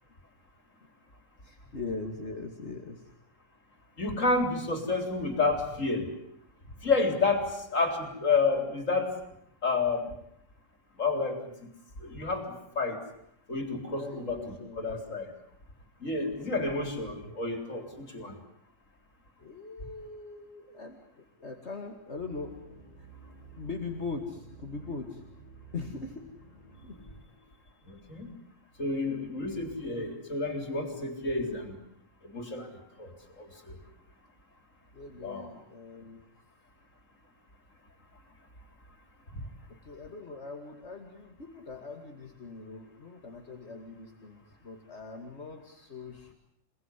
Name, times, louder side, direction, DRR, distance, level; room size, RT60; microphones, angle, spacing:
voice 1, 1.4-3.1 14.0-14.9 19.4-22.5 23.0-23.1 23.6-25.2 25.7-26.2 26.8-27.0 34.9-36.2 39.7-46.3, left 3 dB, 60° left, 4 dB, 2.6 m, -41 dB
voice 2, 4.0-6.1 6.8-9.1 9.6-10.1 11.0-11.4 12.0-12.4 12.8-13.0 13.5-15.3 16.0-18.3 27.9-28.3 28.8-31.8 32.2-32.7 33.0-33.1 33.4-33.8 35.2-35.5, left 3 dB, 90° left, 6 dB, 4.3 m, -30 dB
sound 1, 22.2-27.6, right 3 dB, 35° right, 8.1 m, -52 dB
28.5 x 19.5 x 9.9 m, 0.74 s
omnidirectional pair, 1.3 m